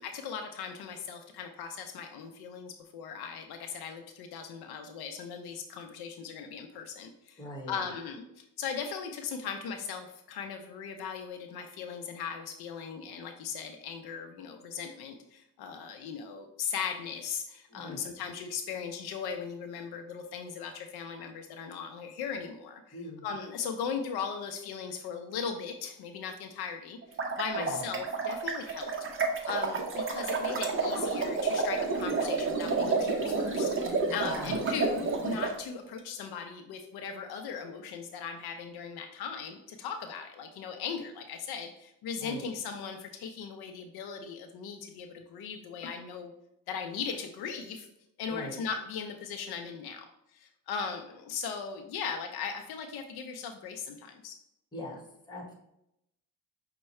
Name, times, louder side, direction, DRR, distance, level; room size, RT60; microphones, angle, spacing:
voice 1, 0.0-27.0 27.4-28.9 29.5-46.3 46.7-47.9 48.2-50.0 50.3-54.4, left 6 dB, 70° left, 5 dB, 0.6 m, -38 dB
voice 2, 7.4-7.7 17.7-18.0 22.9-23.2 27.5-27.8 34.2-34.6 42.2-42.4 48.3-48.6 54.7-55.0 55.3-55.5, left 1 dB, 10° left, -1 dB, 1.2 m, -40 dB
sound 1, 27.0-35.5, right 4 dB, 30° right, 0.7 m, -30 dB
5.5 x 2.2 x 4.2 m, 0.83 s
cardioid pair, 115°, 40 cm